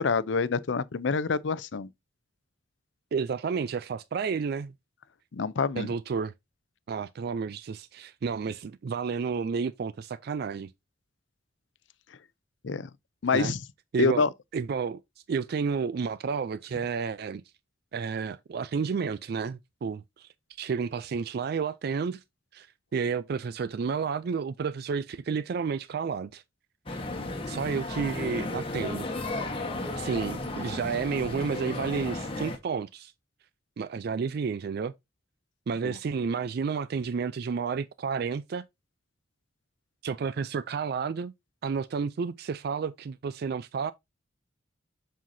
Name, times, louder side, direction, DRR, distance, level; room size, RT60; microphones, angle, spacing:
voice 1, 0.0-1.9 5.3-5.9 12.6-12.9 13.2-13.6 14.0-14.3 35.8-36.0, left 4 dB, 70° left, 0.5 m, -26 dB
voice 2, 3.1-4.7 5.8-6.3 6.9-10.7 13.3-13.5 13.9-14.3 14.5-15.0 15.3-17.4 17.9-20.3 20.6-22.2 22.5-22.7 22.9-26.4 26.9-27.0 27.5-29.1 30.0-33.1 33.8-34.9 35.7-38.6 40.0-41.3 41.6-43.9, right 5 dB, 55° right, 0.3 m, -31 dB
sound 1, 26.9-32.6, left 2 dB, 30° left, 1.3 m, -34 dB
7.5 x 5.6 x 2.7 m
head